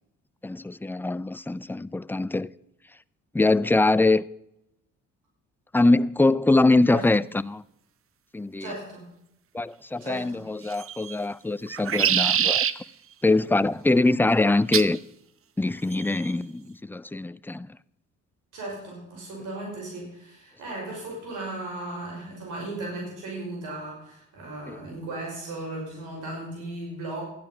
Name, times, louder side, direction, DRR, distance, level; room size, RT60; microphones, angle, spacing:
voice 1, 0.4-2.5 3.3-4.2 5.7-7.6 8.3-8.7 9.5-12.7 13.2-15.0 15.6-17.7 24.7-24.8, left 2 dB, 5° left, 0.4 m, -23 dB
voice 2, 8.6-9.0 10.0-10.4 18.5-27.2, right 2 dB, 90° right, 5.7 m, -36 dB
sound 1, 10.7-11.1 11.7-12.7 14.7-15.0 15.9-16.3, right 9 dB, 45° right, 0.7 m, -24 dB
13.0 x 10.5 x 5.8 m
cardioid pair, 90°, 30 cm